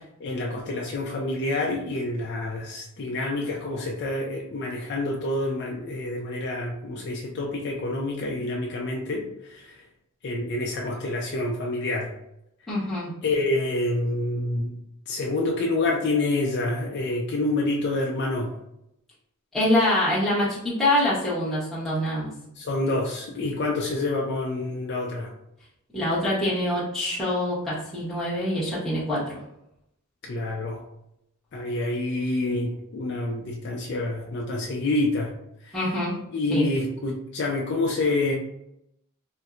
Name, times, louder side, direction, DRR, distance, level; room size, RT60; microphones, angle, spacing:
voice 1, 0.2-9.8 10.2-12.1 13.2-14.7 15.1-18.6 22.6-25.3 30.2-30.8 31.5-35.4 35.6-35.8 36.3-38.3, left 2 dB, 50° left, -2 dB, 0.4 m, -27 dB
voice 2, 12.7-13.1 19.5-22.3 25.9-29.4 35.7-36.2 36.5-36.7, left 1 dB, ahead, -11 dB, 0.8 m, -25 dB
4.1 x 2.1 x 2.4 m, 0.81 s
head